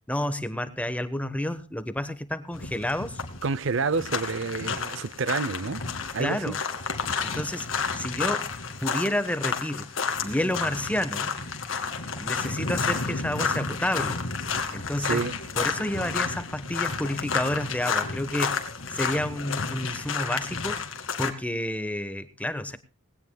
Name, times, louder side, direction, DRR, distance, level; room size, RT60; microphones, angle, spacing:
voice 1, 0.1-3.2 6.2-6.6 7.2-7.7 7.9-8.5 8.8-9.9 10.2-11.3 12.2-14.2 14.7-15.2 15.6-18.6 18.9-20.8 21.2-22.8, left 1 dB, 5° left, 1.1 m, -30 dB
sound 1, 2.5-21.3, left 5 dB, 75° left, 2.0 m, -31 dB
voice 2, 3.4-5.8 6.1-6.6 15.0-15.3, right 4 dB, 65° right, 0.6 m, -28 dB
20.0 x 17.0 x 2.3 m
head